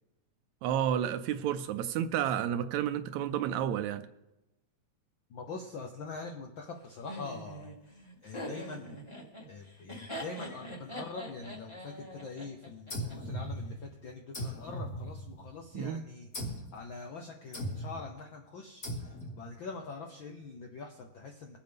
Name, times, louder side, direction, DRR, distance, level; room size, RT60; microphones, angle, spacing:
voice 1, 0.6-4.0 15.7-16.0, right 10 dB, 80° right, 10 dB, 1.8 m, -31 dB
voice 2, 5.3-7.7 8.2-9.0 9.5-16.3 16.7-21.6, left 4 dB, 80° left, 3 dB, 1.1 m, -44 dB
Laughter, 7.1-13.1, equal, 15° left, 1.2 m, -43 dB
sound 1, 12.9-13.9 14.3-15.6 16.3-16.8 17.5-18.1 18.8-19.5, equal, 30° left, 1.5 m, -38 dB
23.0 x 8.0 x 3.5 m, 0.97 s
omnidirectional pair, 3.4 m